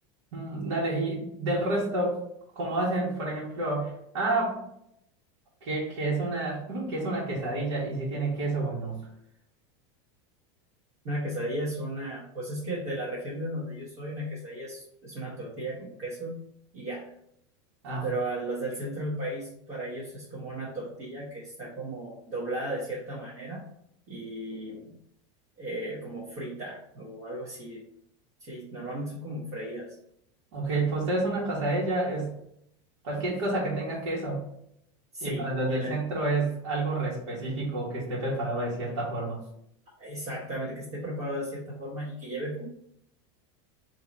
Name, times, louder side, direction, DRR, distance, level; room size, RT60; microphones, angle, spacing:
voice 1, 0.3-2.2 2.5-4.6 5.6-9.0 17.8-18.1 30.5-32.3 33.0-34.4 35.2-39.4, right 2 dB, 80° right, -7 dB, 1.5 m, -29 dB
voice 2, 11.0-16.4 16.7-17.1 18.0-23.6 24.1-25.0 25.6-27.9 28.4-30.0 35.1-35.9 40.0-42.7, right 1 dB, 45° right, -7 dB, 1.1 m, -35 dB
3.7 x 2.8 x 4.1 m, 0.74 s
supercardioid pair, 175°, 15 cm